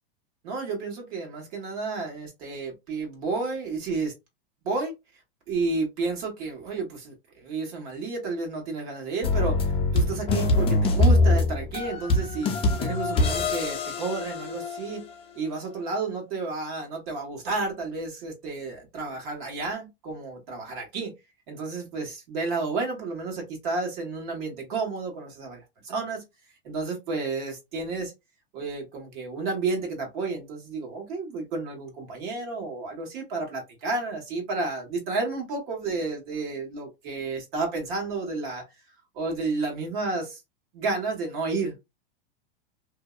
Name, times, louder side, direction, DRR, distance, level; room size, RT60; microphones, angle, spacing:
voice 1, 0.4-4.1 4.6-4.9 5.5-12.5 12.8-15.1 15.4-21.1 21.5-26.2 26.6-28.1 28.5-38.6 39.1-40.4 40.7-41.7, right 3 dB, 55° right, 1.3 m, -31 dB
sound 1, 9.2-15.0, left 2 dB, 20° left, 0.5 m, -24 dB
2.6 x 2.1 x 2.3 m
supercardioid pair, 135°, 29 cm